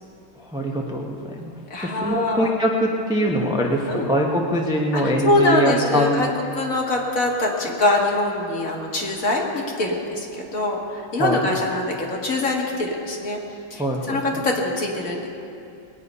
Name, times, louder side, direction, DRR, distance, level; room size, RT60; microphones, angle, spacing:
voice 1, 0.4-1.5 1.8-6.2 11.2-11.4 13.8-14.2, equal, 5° right, -1 dB, 0.6 m, -23 dB
voice 2, 1.7-2.5 3.9-4.1 4.9-6.3 6.5-13.4 13.7-13.8 14.1-15.3, left 2 dB, 40° left, -1 dB, 1.9 m, -23 dB
20.5 x 9.4 x 5.5 m, 2.7 s
omnidirectional pair, 2.3 m